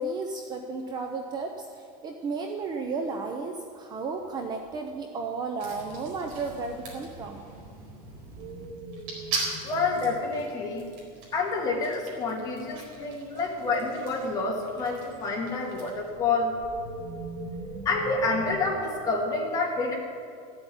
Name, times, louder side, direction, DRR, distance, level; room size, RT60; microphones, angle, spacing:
voice 1, 0.0-7.4, right 3 dB, 20° right, 4 dB, 0.7 m, -33 dB
sound 1, 4.3-4.9 6.2-10.4 11.0-11.1 11.7-13.0 14.2-19.1, right 2 dB, 85° right, 3.0 m, -43 dB
sound 2, 5.6-16.1, right 3 dB, 45° right, 4.4 m, -41 dB
voice 2, 9.6-10.9 11.3-16.5 17.8-20.0, left 3 dB, 20° left, -2 dB, 2.5 m, -28 dB
15.0 x 8.0 x 9.9 m, 2.3 s
supercardioid pair, 175°, 19 cm